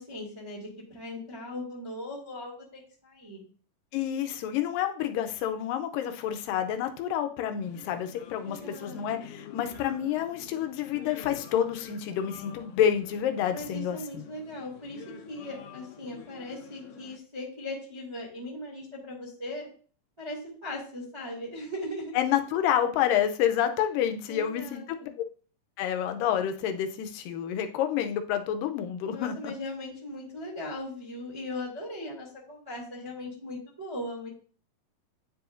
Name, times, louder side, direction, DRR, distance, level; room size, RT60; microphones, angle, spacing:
voice 1, 0.0-3.4 8.5-9.3 13.5-19.7 20.2-22.2 24.3-25.1 29.1-34.3, left 1 dB, 10° right, -6 dB, 1.9 m, -39 dB
voice 2, 3.9-14.2 22.2-25.2 25.8-29.5, left 10 dB, 85° left, 7 dB, 2.3 m, -29 dB
sound 1, 7.6-17.2, left 8 dB, 70° left, 1.9 m, -48 dB
9.9 x 4.8 x 2.6 m, 0.41 s
omnidirectional pair, 3.9 m